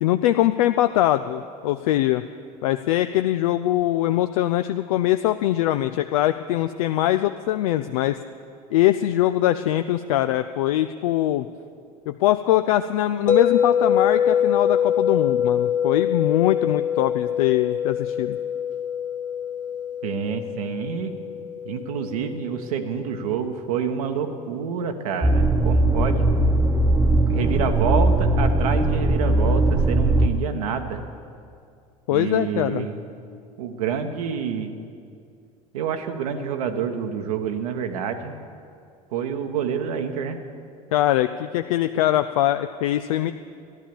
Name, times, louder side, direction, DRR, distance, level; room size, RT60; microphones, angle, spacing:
voice 1, 0.0-2.2 2.6-8.2 8.7-11.5 12.1-18.4 32.1-32.9 40.9-43.3, left 14 dB, 65° left, 10 dB, 0.5 m, -22 dB
sound 1, 13.3-23.4, left 8 dB, 40° left, 1.4 m, -24 dB
voice 2, 20.0-21.1 21.6-26.3 27.3-31.1 32.1-33.1 33.6-34.8 35.7-38.4 39.1-40.4, right 7 dB, 70° right, 5 dB, 1.1 m, -28 dB
sound 2, 25.2-30.3, right 2 dB, 15° right, 1.0 m, -19 dB
14.0 x 11.0 x 7.0 m, 2.4 s
figure-of-eight pair, 65°, 20 cm